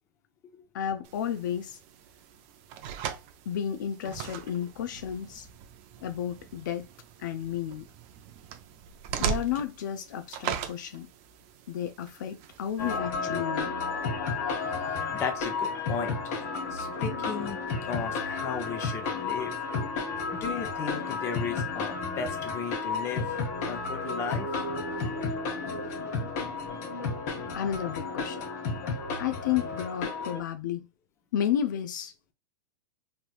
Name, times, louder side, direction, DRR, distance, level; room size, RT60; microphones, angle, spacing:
voice 1, 0.7-1.8 3.5-5.5 6.0-6.9 7.2-7.9 9.2-11.1 11.7-13.7 27.5-28.4 29.2-30.9 31.3-32.3, left 9 dB, 75° left, 0.4 m, -32 dB
sound 1, 1.0-13.0, right 9 dB, 45° right, 0.4 m, -39 dB
sound 2, 12.8-30.4, left 4 dB, 50° left, 1.2 m, -32 dB
voice 2, 14.7-16.2 16.7-17.6 17.8-19.5 20.3-23.4 23.6-24.5, left 6 dB, 25° left, 0.8 m, -35 dB
3.2 x 3.0 x 2.4 m
supercardioid pair, 145°, 10 cm